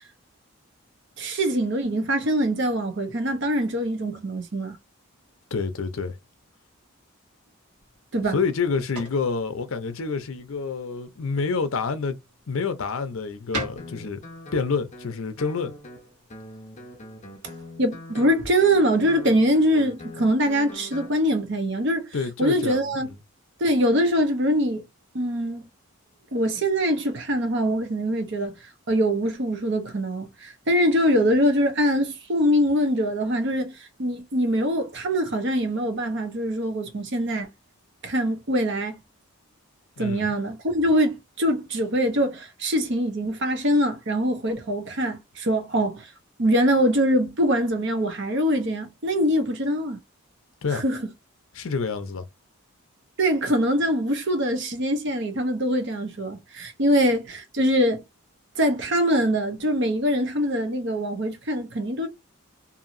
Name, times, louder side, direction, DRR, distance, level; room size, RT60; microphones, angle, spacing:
voice 1, 1.2-4.8 8.1-8.4 17.8-22.0 22.4-23.1 23.6-24.8 25.1-25.7 26.3-28.5 28.9-37.5 38.0-39.0 40.0-46.1 46.4-50.0 50.7-51.1 53.2-58.0 58.6-62.1, equal, 50° right, 0.7 m, -23 dB
voice 2, 5.5-6.2 8.3-12.2 12.5-14.2 14.5-15.7 22.1-23.2 40.0-40.3 50.6-50.8 51.5-52.3, left 4 dB, 65° left, 0.6 m, -28 dB
sound 1, 7.7-16.9, right 1 dB, 90° right, 1.6 m, -43 dB
Guitar, 13.8-21.1, left 1 dB, 30° left, 0.8 m, -43 dB
2.8 x 2.6 x 2.5 m
head